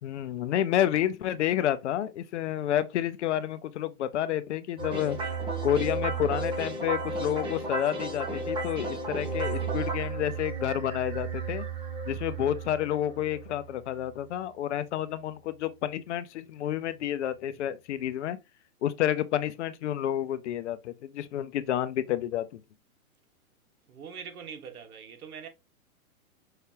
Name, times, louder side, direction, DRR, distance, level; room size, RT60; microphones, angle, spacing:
voice 1, 0.0-5.3 5.6-11.6 12.1-18.4 18.8-22.6, left 11 dB, 55° left, 0.6 m, -30 dB
sound 1, 4.8-14.0, right 3 dB, 10° right, 1.0 m, -33 dB
voice 2, 23.9-25.5, right 6 dB, 80° right, 1.4 m, -43 dB
5.7 x 3.2 x 2.8 m
hypercardioid pair, 145°, 44 cm